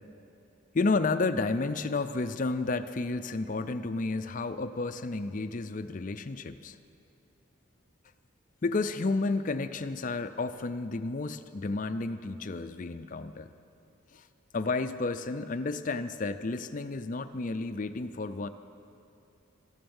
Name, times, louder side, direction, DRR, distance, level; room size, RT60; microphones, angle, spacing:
voice 1, 0.7-6.8 8.6-13.5 14.1-14.3 14.5-18.5, left 3 dB, 40° left, 10 dB, 0.5 m, -31 dB
14.5 x 11.0 x 7.1 m, 2.9 s
head